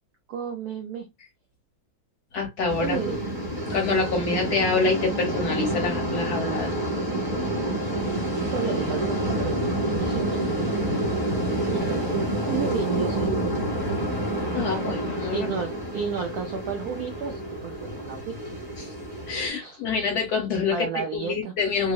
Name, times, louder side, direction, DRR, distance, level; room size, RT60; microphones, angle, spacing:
voice 1, 0.3-1.1 2.8-3.2 4.3-4.5 7.6-7.9 8.4-10.2 10.9-11.1 11.7-12.0 12.4-13.6 15.3-18.3 19.6-19.8 20.7-21.5, right 6 dB, 75° right, 0.9 m, -32 dB
voice 2, 2.3-3.0 3.7-6.7 14.5-15.5 18.8-18.9 19.3-21.9, left 4 dB, 55° left, 1.3 m, -26 dB
sound 1, 2.7-19.5, right 1 dB, 15° right, 0.8 m, -28 dB
3.6 x 2.0 x 2.3 m
omnidirectional pair, 2.3 m